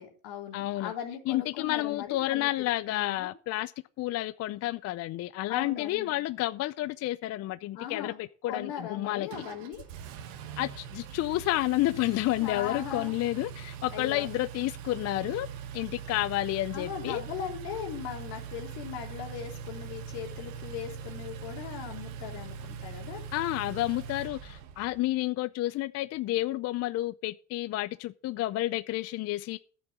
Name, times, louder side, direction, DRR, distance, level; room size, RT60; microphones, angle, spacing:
voice 1, 0.0-3.3 5.5-6.1 7.7-8.2 8.5-9.8 12.4-13.1 13.9-14.3 16.7-23.2, left 9 dB, 75° left, 3.3 m, -39 dB
voice 2, 0.5-0.9 1.3-3.7 4.0-9.3 10.6-15.5 15.7-17.2 23.3-29.6, left 16 dB, 45° left, 0.5 m, -30 dB
Engine, 9.3-25.0, right 7 dB, 90° right, 1.4 m, -42 dB
10.5 x 7.0 x 6.0 m
supercardioid pair, 95°, 37 cm